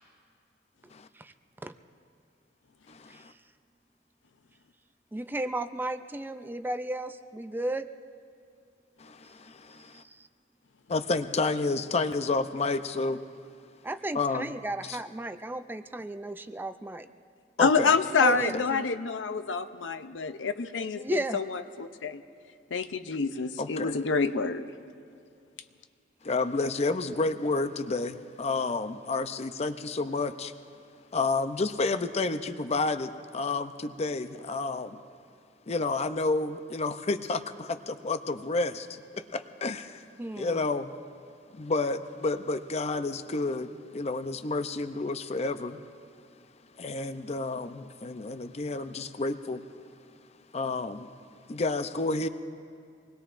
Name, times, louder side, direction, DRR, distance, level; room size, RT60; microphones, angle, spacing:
voice 1, 2.9-3.3 9.0-10.0 10.9-13.2 14.1-14.5 14.8-15.0 17.6-17.9 18.3-18.6 23.6-24.0 26.2-30.5 31.1-35.0 35.7-40.0 40.4-40.9 41.5-45.9 46.8-49.7 50.5-51.1 51.5-52.3, left 3 dB, 35° left, 10 dB, 0.6 m, -30 dB
voice 2, 5.1-7.9 9.9-10.3 13.8-17.1 18.2-18.9 21.0-21.4 40.2-40.6, right 1 dB, 10° right, 9 dB, 0.4 m, -34 dB
voice 3, 17.6-22.2 22.7-24.7, left 4 dB, 85° left, 10 dB, 0.6 m, -27 dB
26.0 x 20.5 x 2.5 m, 2.4 s
head